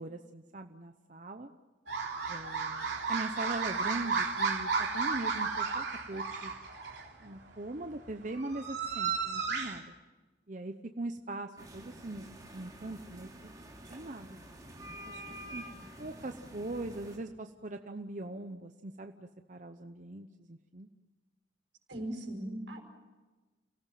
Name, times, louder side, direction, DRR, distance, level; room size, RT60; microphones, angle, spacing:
voice 1, 0.0-1.5 2.3-6.5 7.2-9.9 10.5-13.3 13.9-14.4 15.0-15.2 15.5-15.6 16.0-20.9, right 2 dB, 40° right, 6 dB, 0.8 m, -41 dB
sound 1, 1.9-7.1 8.1-9.8, right 5 dB, 65° right, 3.6 m, -33 dB
sound 2, 11.6-17.2, right 1 dB, 20° right, 3.0 m, -48 dB
voice 2, 21.9-22.8, right 1 dB, 85° right, 2 dB, 5.5 m, -38 dB
30.0 x 17.5 x 7.5 m, 1.2 s
head